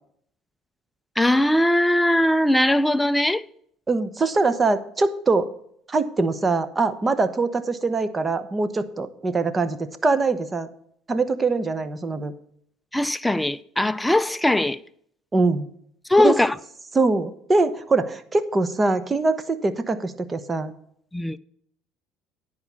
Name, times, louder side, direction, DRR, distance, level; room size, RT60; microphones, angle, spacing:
voice 1, 1.2-3.4 12.9-14.8 16.1-16.6 21.1-21.4, left 1 dB, 5° left, 0.5 m, -20 dB
voice 2, 3.9-5.5 5.9-10.7 11.1-12.3 15.3-15.7 16.2-16.4 16.9-20.7, right 3 dB, 25° right, 1.0 m, -23 dB
10.5 x 4.8 x 7.3 m
supercardioid pair, 85°, 0 cm